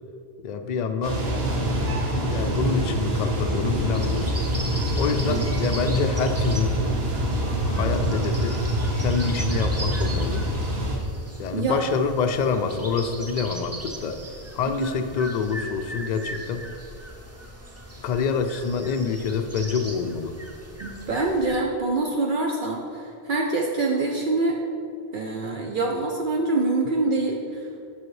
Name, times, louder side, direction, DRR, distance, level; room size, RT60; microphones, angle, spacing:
voice 1, 0.4-1.2 2.3-4.5 4.9-6.7 7.7-8.6 9.0-10.4 11.4-14.2 14.5-16.7 18.0-20.4, left 5 dB, 55° left, 8 dB, 0.5 m, -26 dB
sound 1, 1.0-11.0, equal, 75° right, 1.2 m, -25 dB
sound 2, 3.9-21.6, right 1 dB, 20° right, 0.5 m, -39 dB
voice 2, 20.8-24.6 25.1-27.9, right 3 dB, 60° right, 0 dB, 0.7 m, -25 dB
7.6 x 5.6 x 3.2 m, 2.5 s
omnidirectional pair, 1.1 m